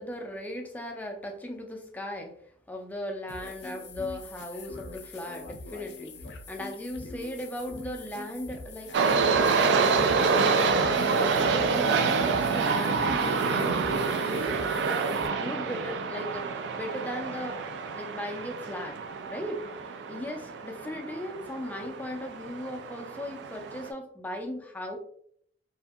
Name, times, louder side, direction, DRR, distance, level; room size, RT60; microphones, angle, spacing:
voice 1, 0.0-2.4 2.7-9.3 9.7-14.6 15.0-17.6 17.9-19.0 19.3-19.6 20.1-25.0, left 1 dB, 10° left, 2 dB, 0.4 m, -37 dB
sound 1, 3.3-15.3, left 3 dB, 75° left, 0.4 m, -43 dB
sound 2, 8.9-23.9, right 4 dB, 75° right, 0.3 m, -27 dB
2.7 x 2.5 x 2.3 m, 0.64 s
head